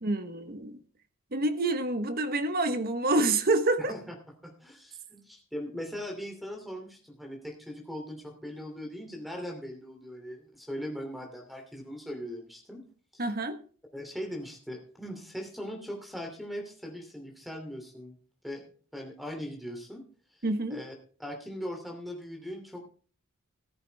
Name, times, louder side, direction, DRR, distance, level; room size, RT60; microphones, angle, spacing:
voice 1, 0.0-0.8 1.3-3.9 13.2-13.6 20.4-20.8, right 2 dB, 45° right, 1.2 m, -27 dB
voice 2, 3.8-4.1 4.4-12.8 13.1-13.2 13.9-18.2 18.4-18.7 18.9-20.0 20.7-22.8, equal, ahead, 2.9 m, -40 dB
14.5 x 13.0 x 3.5 m
head